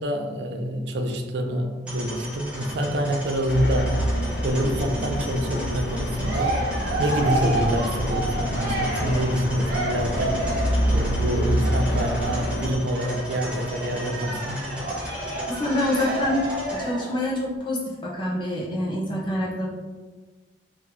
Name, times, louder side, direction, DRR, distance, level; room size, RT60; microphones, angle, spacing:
voice 1, 0.0-4.0 4.4-10.4 10.9-14.7, equal, 70° right, 4 dB, 0.4 m, -26 dB
sound 1, 1.8-16.8, equal, 5° right, 0.8 m, -37 dB
sound 2, 3.5-12.7, equal, 65° left, 0.5 m, -27 dB
Cheering, 5.8-10.8 11.6-17.2, right 2 dB, 50° right, 1.0 m, -31 dB
voice 2, 15.5-19.7, left 1 dB, 25° left, -4 dB, 0.8 m, -26 dB
2.9 x 2.6 x 3.8 m, 1.3 s
head